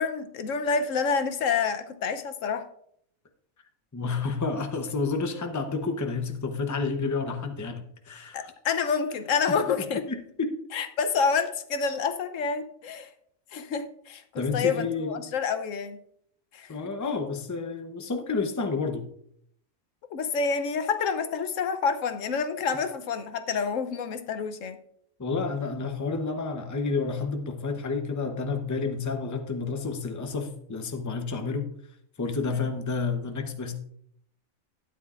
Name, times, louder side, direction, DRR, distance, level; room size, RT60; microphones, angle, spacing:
voice 1, 0.0-2.6 8.3-10.1 10.7-13.1 13.5-16.0 16.5-16.7 20.1-24.8 32.5-32.6, left 5 dB, 75° left, 9 dB, 1.1 m, -28 dB
voice 2, 3.9-8.5 10.1-10.5 14.4-15.3 16.7-19.0 25.2-31.7 32.2-33.7, left 4 dB, 15° left, 5 dB, 0.7 m, -30 dB
12.5 x 9.5 x 2.5 m, 0.68 s
omnidirectional pair, 1.4 m